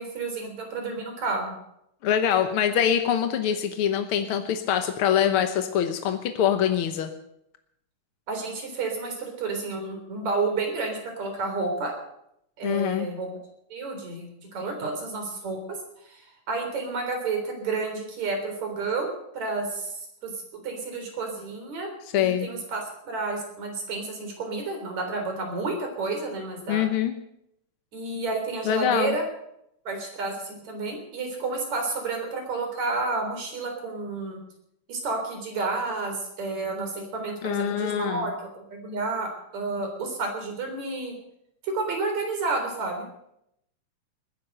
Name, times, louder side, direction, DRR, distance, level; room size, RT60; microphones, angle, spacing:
voice 1, 0.0-1.5 8.3-12.0 12.6-13.3 13.7-15.6 16.0-20.3 20.6-21.9 22.2-26.8 27.9-29.2 29.8-34.4 34.9-41.2 41.6-43.0, right 3 dB, 60° right, 3 dB, 5.0 m, -30 dB
voice 2, 2.0-7.1 12.6-13.1 22.1-22.5 26.7-27.1 28.6-29.2 37.4-38.3, left 9 dB, 70° left, 7 dB, 1.3 m, -24 dB
20.0 x 10.5 x 6.6 m, 0.78 s
omnidirectional pair, 3.7 m